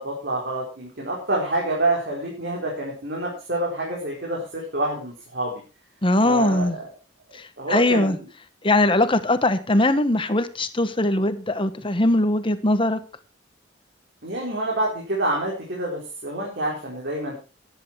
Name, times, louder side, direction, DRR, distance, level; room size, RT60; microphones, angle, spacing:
voice 1, 0.0-5.6 6.2-6.8 7.3-8.3 14.2-17.3, right 1 dB, 60° right, 4.6 m, -27 dB
voice 2, 6.0-6.8 7.3-8.2 8.6-13.0, left 1 dB, 25° left, 1.4 m, -21 dB
14.0 x 10.5 x 4.8 m
head